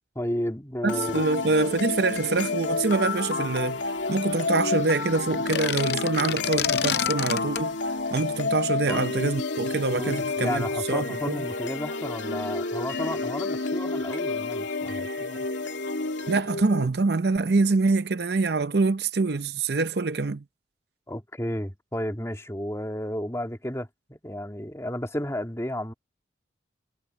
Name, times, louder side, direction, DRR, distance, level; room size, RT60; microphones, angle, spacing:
voice 1, 0.2-1.2 8.9-9.1 10.0-15.4 21.1-25.9, left 1 dB, 15° left, 2.0 m, -32 dB
voice 2, 0.8-3.8 4.1-7.8 8.1-11.4 16.3-20.4, right 3 dB, 60° right, 0.7 m, -25 dB
sound 1, 0.9-16.9, left 3 dB, 80° left, 2.6 m, -30 dB
sound 2, 5.3-7.7, left 8 dB, 65° left, 0.6 m, -28 dB
head